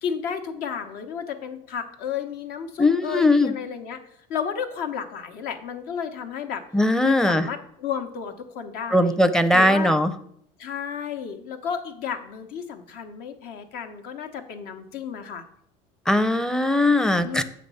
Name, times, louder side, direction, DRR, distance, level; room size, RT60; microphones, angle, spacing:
voice 1, 0.0-4.0 4.3-6.6 7.0-9.2 9.5-10.0 10.6-15.4 17.2-17.4, left 7 dB, 65° left, 6 dB, 0.9 m, -32 dB
voice 2, 2.8-3.5 6.7-7.5 8.9-10.1 16.1-17.4, left 1 dB, 5° left, 10 dB, 0.5 m, -19 dB
7.7 x 3.1 x 5.5 m, 0.69 s
supercardioid pair, 85°, 17 cm